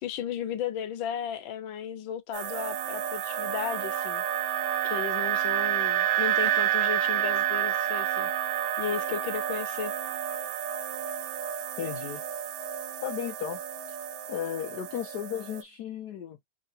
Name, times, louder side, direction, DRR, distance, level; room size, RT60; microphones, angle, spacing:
voice 1, 0.0-4.2 4.8-8.3 8.8-9.9, left 9 dB, 70° left, 1.4 m, -35 dB
sound 1, 2.3-15.6, right 11 dB, 85° right, 1.5 m, -30 dB
voice 2, 11.8-12.2 13.0-13.6 13.9-14.0 14.3-16.5, left 10 dB, 90° left, 0.8 m, -35 dB
3.7 x 3.2 x 2.7 m
omnidirectional pair, 2.4 m